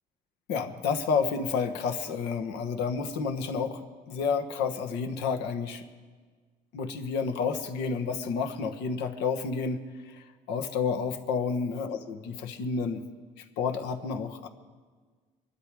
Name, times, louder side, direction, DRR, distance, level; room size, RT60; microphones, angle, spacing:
voice 1, 0.5-5.8 6.7-13.0 13.4-14.5, left 5 dB, 90° left, 7 dB, 1.3 m, -30 dB
23.0 x 12.0 x 4.8 m, 1.5 s
cardioid pair, 110°, 17 cm